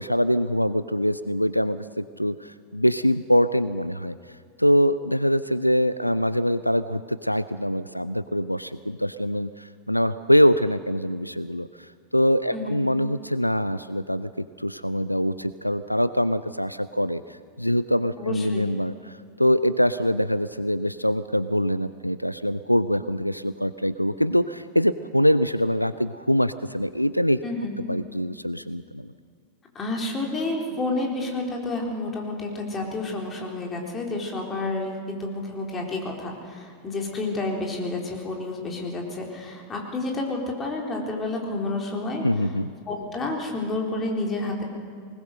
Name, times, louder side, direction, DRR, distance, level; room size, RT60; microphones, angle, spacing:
voice 1, 0.0-4.2 4.6-27.4 27.9-29.1 42.2-42.7, equal, 90° left, 15 dB, 0.4 m, -24 dB
voice 2, 18.2-18.7 27.4-27.7 29.7-42.2 42.9-44.6, left 2 dB, 20° left, 0 dB, 4.0 m, -30 dB
20.5 x 20.0 x 6.5 m, 2.2 s
figure-of-eight pair, 90°, 0 cm